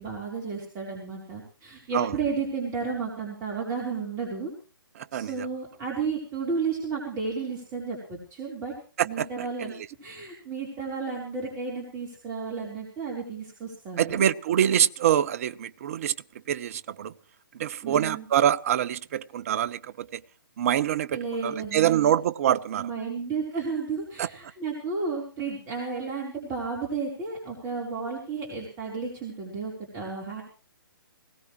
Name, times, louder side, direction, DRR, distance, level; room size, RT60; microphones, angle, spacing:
voice 1, 0.0-4.5 5.1-8.7 9.0-9.8 10.0-14.3 17.8-18.3 21.1-22.1 22.8-30.4, right 5 dB, 25° right, 4.0 m, -32 dB
voice 2, 5.0-5.3 9.0-9.3 14.0-16.1 16.5-17.1 17.6-20.2 20.6-22.9 24.2-24.3, right 10 dB, 40° right, 0.7 m, -25 dB
20.5 x 17.5 x 3.2 m
figure-of-eight pair, 130°, 12 cm